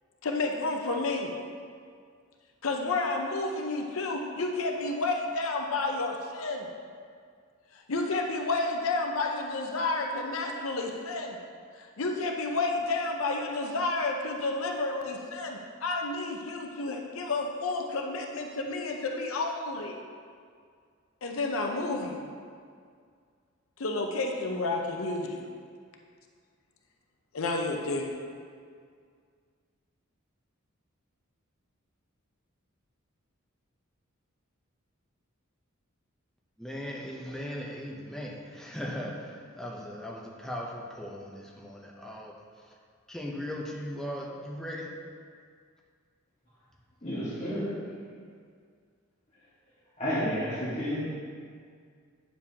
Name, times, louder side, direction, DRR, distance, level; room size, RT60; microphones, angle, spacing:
voice 1, 0.2-1.3 2.6-6.7 7.7-11.4 11.8-20.0 21.2-22.2 23.8-25.5 27.3-28.1, left 3 dB, 75° left, 2 dB, 0.7 m, -30 dB
voice 2, 36.6-42.8 43.1-44.9, equal, ahead, -3 dB, 0.8 m, -38 dB
voice 3, 47.0-47.7 50.0-51.0, equal, 35° left, -11 dB, 1.7 m, -30 dB
8.9 x 7.2 x 2.9 m, 2.1 s
head